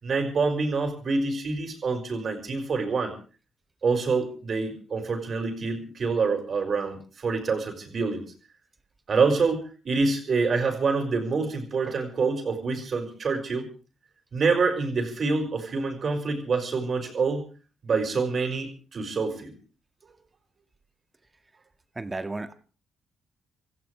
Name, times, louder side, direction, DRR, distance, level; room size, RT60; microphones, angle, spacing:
voice 1, 0.0-3.1 3.8-8.2 9.1-13.7 14.3-17.5 17.8-19.5, right 4 dB, 55° right, 5 dB, 5.6 m, -26 dB
voice 2, 22.0-22.5, right 2 dB, 25° right, 9 dB, 1.8 m, -33 dB
27.5 x 15.0 x 3.4 m, 0.37 s
supercardioid pair, 60°, 0 cm